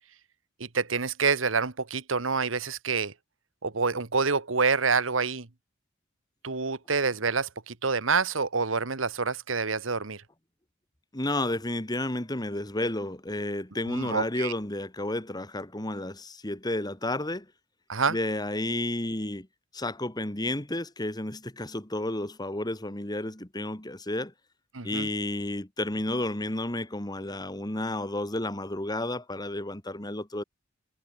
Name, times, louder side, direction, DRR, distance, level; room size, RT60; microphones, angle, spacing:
voice 1, 0.6-3.1 3.6-5.5 6.4-10.2 13.9-14.5 17.9-18.2 24.7-25.1, right 4 dB, 80° right, 1.5 m, -27 dB
voice 2, 11.1-17.5 18.1-19.5 19.7-24.3 24.8-30.4, left 1 dB, 20° left, 2.2 m, -31 dB
head